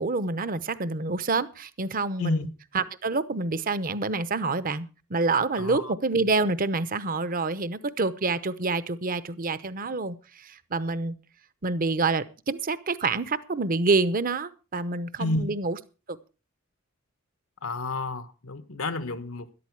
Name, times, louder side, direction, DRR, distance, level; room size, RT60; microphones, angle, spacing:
voice 1, 0.0-2.5 2.7-11.1 11.6-15.8 16.1-16.2, right 3 dB, 45° right, 0.8 m, -27 dB
voice 2, 5.5-5.9 15.2-15.5 17.6-19.5, left 2 dB, 90° left, 1.4 m, -30 dB
13.0 x 11.5 x 4.7 m
head